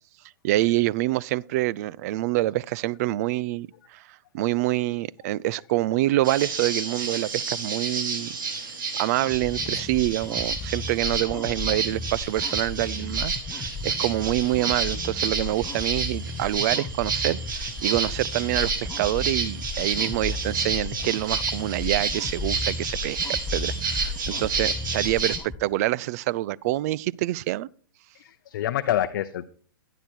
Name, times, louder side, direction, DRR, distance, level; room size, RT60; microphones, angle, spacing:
voice 1, 0.4-4.0 4.3-8.4 9.0-27.7, right 16 dB, 45° right, 0.4 m, -26 dB
sound 1, 6.2-25.4, right 5 dB, 65° right, 5.2 m, -30 dB
sound 2, 9.2-25.6, left 3 dB, 15° left, 0.9 m, -35 dB
voice 2, 28.1-29.5, left 11 dB, 60° left, 0.7 m, -27 dB
12.5 x 9.9 x 4.5 m
hypercardioid pair, 125°, 11 cm